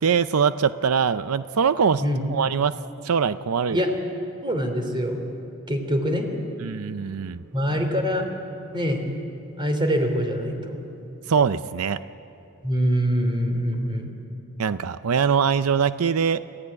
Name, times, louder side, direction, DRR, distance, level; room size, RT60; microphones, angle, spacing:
voice 1, 0.0-2.0 2.3-2.7 3.0-3.8 6.6-7.4 11.3-12.0 14.6-16.4, right 6 dB, 90° right, 13 dB, 0.5 m, -22 dB
voice 2, 4.4-5.2 5.7-6.3 7.5-8.2 8.7-9.0 9.6-10.8 12.6-14.1, equal, 25° right, 5 dB, 3.1 m, -24 dB
30.0 x 15.5 x 9.6 m, 2.8 s
head